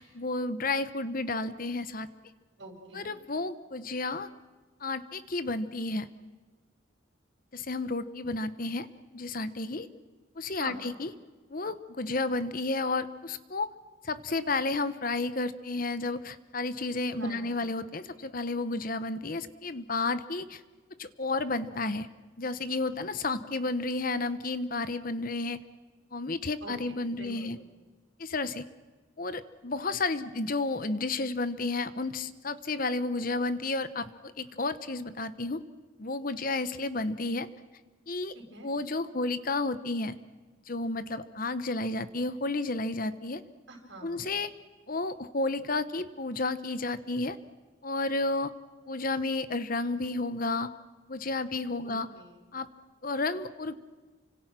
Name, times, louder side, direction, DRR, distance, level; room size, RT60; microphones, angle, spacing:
voice 1, 0.0-2.1 2.9-4.3 4.8-6.1 7.5-8.9 9.1-9.9 10.4-11.1 11.5-13.7 14.0-20.6 21.0-22.1 22.4-25.6 26.1-27.6 28.2-28.6 29.2-35.6 36.0-37.5 38.1-38.3 38.6-40.2 40.7-43.4 44.0-44.5 44.9-47.4 47.8-48.5 48.9-50.7 51.1-52.1 52.5-52.7 53.0-53.7, left 3 dB, 45° left, 13 dB, 1.0 m, -32 dB
voice 2, 2.6-3.1 10.6-10.9 17.1-17.5 26.6-26.7 27.1-27.5 38.3-38.7 43.7-44.3 51.8-52.4, right 2 dB, 60° right, 3 dB, 6.2 m, -45 dB
29.5 x 26.0 x 6.1 m, 1.4 s
head